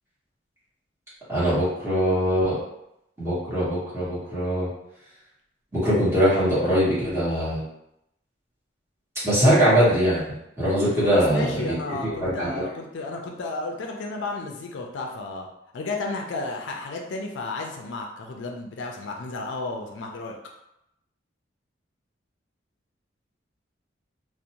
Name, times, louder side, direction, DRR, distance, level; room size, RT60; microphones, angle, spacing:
voice 1, 1.3-2.6 3.2-4.7 5.7-7.6 9.2-10.2 10.6-11.8 12.0-12.6, equal, 15° right, -11 dB, 1.1 m, -22 dB
voice 2, 11.0-15.5 15.7-20.4, left 3 dB, 75° left, 1 dB, 0.4 m, -32 dB
2.5 x 2.0 x 2.8 m, 0.82 s
head